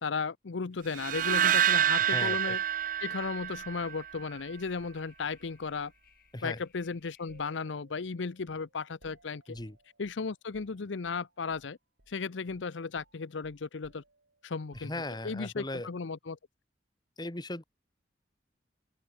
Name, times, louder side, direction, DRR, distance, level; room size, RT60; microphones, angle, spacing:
voice 1, 0.0-2.6 3.0-5.9 6.4-9.6 10.0-11.8 12.1-14.0 14.4-14.9 15.2-16.4, left 4 dB, 80° left, 0.7 m, -35 dB
sound 1, 0.9-4.1, right 9 dB, 45° right, 0.5 m, -27 dB
voice 2, 2.0-2.6 6.3-6.6 9.5-9.8 14.7-15.9 17.2-17.6, left 2 dB, 20° left, 1.4 m, -38 dB
sound 2, 2.1-7.7, left 10 dB, 50° left, 7.2 m, -65 dB
sound 3, 7.3-11.7 12.0-12.2 12.5-15.4, right 1 dB, 85° right, 6.5 m, -63 dB
open air
head